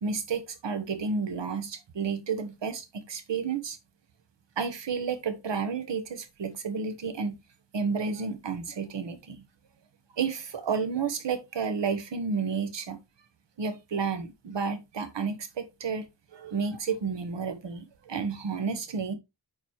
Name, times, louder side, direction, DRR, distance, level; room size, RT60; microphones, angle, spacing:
voice 1, 0.0-3.8 4.6-7.4 7.7-9.4 10.1-13.0 13.6-16.1 16.3-19.1, right 5 dB, 80° right, 1.3 m, -31 dB
9.2 x 4.0 x 3.2 m
wide cardioid pair, 125°, 42 cm